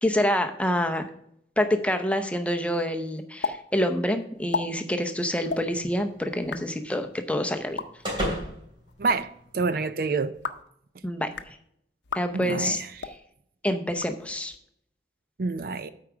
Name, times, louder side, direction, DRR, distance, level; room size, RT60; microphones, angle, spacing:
voice 1, 0.0-1.1 1.6-7.8 11.0-11.3 12.1-12.8 13.6-14.5, equal, 5° left, 0.6 m, -27 dB
sound 1, 3.4-3.6 3.8-3.9 4.3-4.6 5.4-5.6 6.3-6.6 7.6-7.9 8.9-9.2 10.2-10.7 11.2-11.5 12.0-12.2 12.9-13.2 13.9-14.6, left 4 dB, 85° left, 0.6 m, -33 dB
sound 2, 5.5-9.9, equal, 30° right, 2.9 m, -37 dB
voice 2, 9.0-10.3 12.3-12.9 15.4-15.9, right 4 dB, 55° right, 0.4 m, -27 dB
8.5 x 4.7 x 6.1 m
head